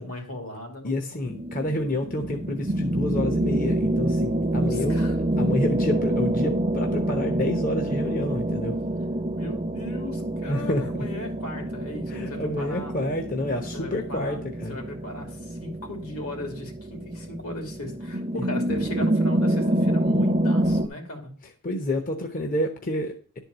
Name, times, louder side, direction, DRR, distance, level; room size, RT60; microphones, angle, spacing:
voice 1, 0.0-1.3 4.5-5.2 9.3-12.9 13.7-14.4 14.7-21.3, left 1 dB, 75° left, 2 dB, 2.8 m, -37 dB
voice 2, 0.8-5.0 5.4-8.8 10.5-11.1 12.1-14.8 21.6-23.4, left 1 dB, 40° left, 4 dB, 0.8 m, -29 dB
sound 1, 1.2-20.9, right 1 dB, 25° right, 0.6 m, -27 dB
11.0 x 4.5 x 6.6 m, 0.43 s
head